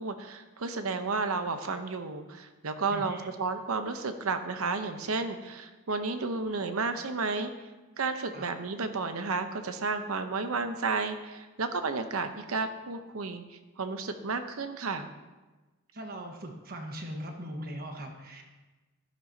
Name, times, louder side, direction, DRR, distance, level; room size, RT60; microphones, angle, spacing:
voice 1, 0.0-7.5 8.0-13.4 13.8-15.1, right 4 dB, 75° right, 8 dB, 0.8 m, -32 dB
voice 2, 2.9-3.3 8.3-8.5 15.9-18.4, equal, 45° right, 2 dB, 1.3 m, -40 dB
12.0 x 11.0 x 2.8 m, 1.2 s
head